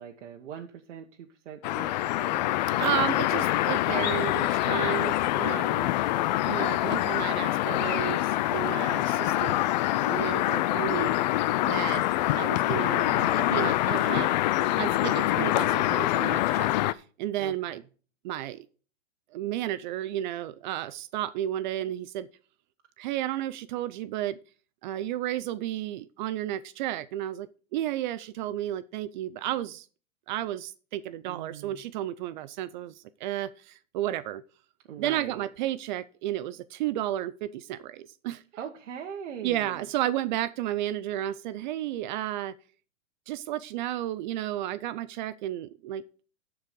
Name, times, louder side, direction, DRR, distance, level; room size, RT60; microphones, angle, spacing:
voice 1, 0.0-2.5 17.4-17.8 31.2-31.8 34.9-35.5 38.5-39.9, right 8 dB, 70° right, 1.4 m, -42 dB
sound 1, 1.6-16.9, left 15 dB, 40° left, 0.4 m, -25 dB
voice 2, 2.8-5.9 6.5-9.6 10.1-11.1 11.7-12.0 12.4-14.4 14.8-17.8 18.2-18.7 19.3-22.3 23.0-24.4 24.8-27.5 27.7-29.9 30.3-34.4 35.0-38.4 39.4-42.5 43.3-46.2, right 13 dB, 40° right, 0.5 m, -32 dB
13.0 x 4.8 x 5.2 m
hypercardioid pair, 135°, 36 cm